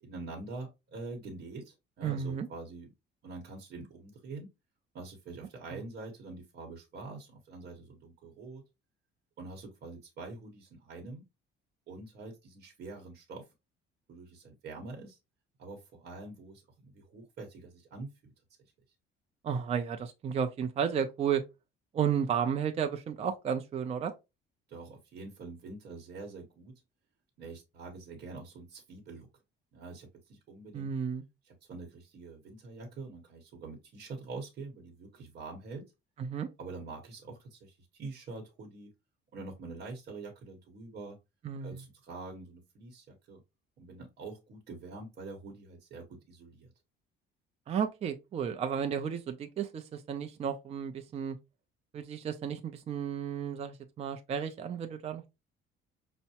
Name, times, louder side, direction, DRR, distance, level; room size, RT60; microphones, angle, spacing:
voice 1, 0.0-2.9 3.2-4.5 4.9-8.6 9.4-11.3 11.9-13.5 14.1-15.2 15.6-18.3 18.6-18.7 24.7-26.7 27.4-29.3 29.7-30.9 31.4-35.8 36.6-38.9 39.3-41.2 41.6-43.4 43.8-46.7, right 3 dB, 50° right, 1.0 m, -45 dB
voice 2, 2.0-2.5 5.7-5.8 19.4-21.4 21.9-24.1 30.7-31.2 36.2-36.5 41.4-41.8 47.7-51.4 51.9-55.3, right 7 dB, 30° right, 0.4 m, -33 dB
5.5 x 2.1 x 2.8 m
cardioid pair, 135°, 21 cm